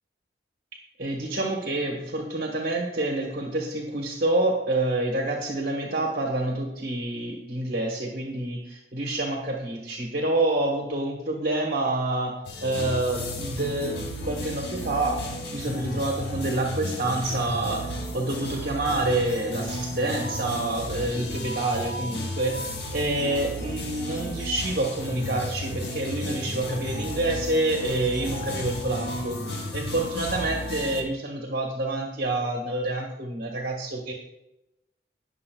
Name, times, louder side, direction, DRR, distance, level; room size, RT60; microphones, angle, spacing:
voice 1, 1.0-34.1, right 2 dB, 55° right, -1 dB, 1.3 m, -28 dB
sound 1, 12.4-31.0, left 1 dB, 75° left, 1.5 m, -33 dB
18.5 x 6.8 x 2.3 m, 0.91 s
head